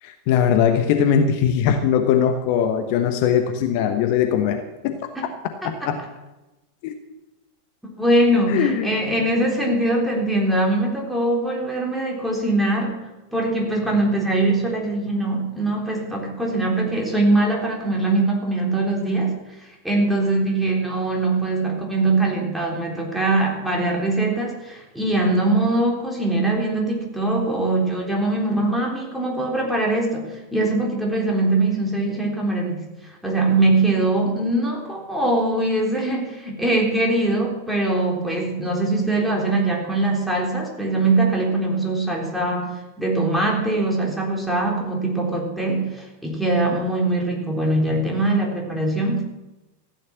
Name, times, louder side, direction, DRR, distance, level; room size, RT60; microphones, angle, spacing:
voice 1, 0.0-5.0 5.4-6.0 6.8-6.9 8.5-8.9, left 8 dB, 45° left, 7 dB, 1.1 m, -20 dB
voice 2, 8.0-13.0 13.3-32.8 33.2-49.2, right 2 dB, 5° right, -1 dB, 3.6 m, -22 dB
14.5 x 9.9 x 7.2 m, 1.0 s
figure-of-eight pair, 90°, 0 cm